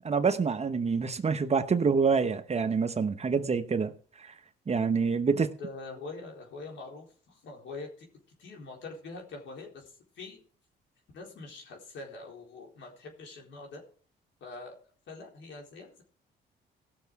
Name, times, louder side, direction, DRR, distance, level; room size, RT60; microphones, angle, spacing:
voice 1, 0.0-3.9 4.2-4.3 4.7-5.5, right 5 dB, 30° right, 1.0 m, -26 dB
voice 2, 5.3-8.1 8.4-10.4 11.1-13.8 14.4-14.8 15.1-16.0, left 3 dB, 70° left, 4.1 m, -44 dB
17.5 x 6.8 x 4.7 m
cardioid pair, 90°, 20 cm